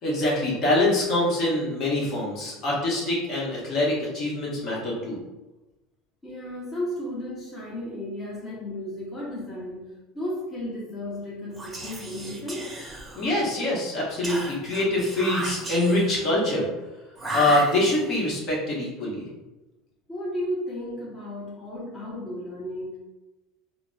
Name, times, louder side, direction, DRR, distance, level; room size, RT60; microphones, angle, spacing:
voice 1, 0.0-5.2 13.1-16.7 17.3-19.3, left 1 dB, 50° left, -4 dB, 1.1 m, -24 dB
voice 2, 6.2-12.7 20.1-23.0, left 1 dB, 20° left, -6 dB, 0.8 m, -34 dB
Whispering, 11.5-13.5 14.2-16.3 17.2-18.2, right 2 dB, 15° right, 0.7 m, -35 dB
3.7 x 2.0 x 2.3 m, 1.1 s
supercardioid pair, 105°, 0 cm